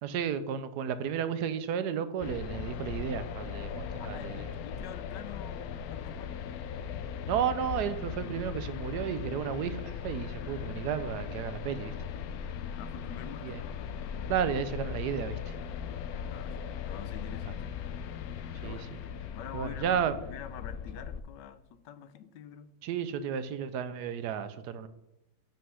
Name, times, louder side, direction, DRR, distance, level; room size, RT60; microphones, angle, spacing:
voice 1, 0.0-4.5 7.3-11.9 13.4-13.6 14.3-15.5 17.5-17.6 18.6-18.9 19.5-20.2 22.8-24.9, right 8 dB, 75° right, 12 dB, 1.2 m, -33 dB
sound 1, 2.2-21.2, left 7 dB, 70° left, 1.0 m, -38 dB
voice 2, 4.0-6.4 12.8-13.6 16.3-17.7 18.6-18.9 19.4-22.7, left 9 dB, 85° left, 13 dB, 1.3 m, -46 dB
7.5 x 5.6 x 5.6 m, 0.87 s
omnidirectional pair, 1.8 m